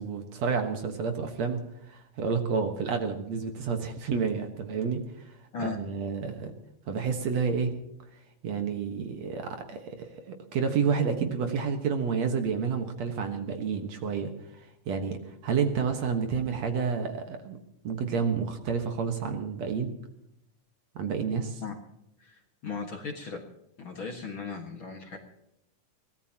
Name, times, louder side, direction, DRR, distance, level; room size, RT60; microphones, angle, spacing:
voice 1, 0.0-6.5 6.9-7.7 8.4-14.3 14.9-17.6 17.8-19.9 21.0-21.6, right 6 dB, 60° right, 5 dB, 2.4 m, -30 dB
voice 2, 22.2-23.4 23.8-25.2, left 5 dB, 45° left, 3 dB, 2.0 m, -37 dB
23.5 x 17.5 x 2.9 m, 0.82 s
omnidirectional pair, 3.8 m